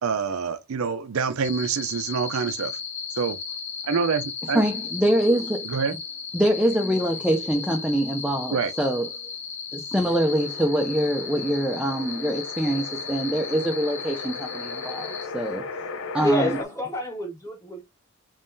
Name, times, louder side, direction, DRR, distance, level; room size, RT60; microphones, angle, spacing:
voice 1, 0.0-2.7 3.2-3.4 3.8-4.6 5.6-5.9 8.5-8.7, right 5 dB, 70° right, 0.5 m, -26 dB
sound 1, 1.4-15.3, left 6 dB, 30° left, 0.8 m, -35 dB
voice 2, 4.5-5.7 6.3-9.1 9.7-15.6 16.1-16.6, right 1 dB, 5° right, 0.4 m, -24 dB
sound 2, 10.0-16.6, left 4 dB, 60° left, 0.6 m, -37 dB
voice 3, 16.2-17.8, equal, 15° left, 1.6 m, -27 dB
3.6 x 3.1 x 2.6 m
head